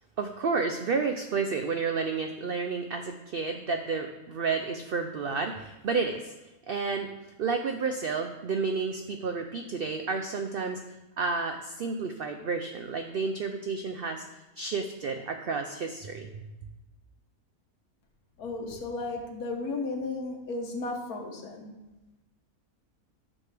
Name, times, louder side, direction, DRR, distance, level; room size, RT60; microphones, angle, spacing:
voice 1, 0.2-6.3 6.7-7.1 7.4-10.8 11.2-14.2 14.6-16.5, right 4 dB, 85° right, 6 dB, 0.5 m, -31 dB
voice 2, 18.4-21.7, left 3 dB, 80° left, 2 dB, 1.6 m, -34 dB
9.6 x 6.4 x 3.3 m, 1.1 s
omnidirectional pair, 1.6 m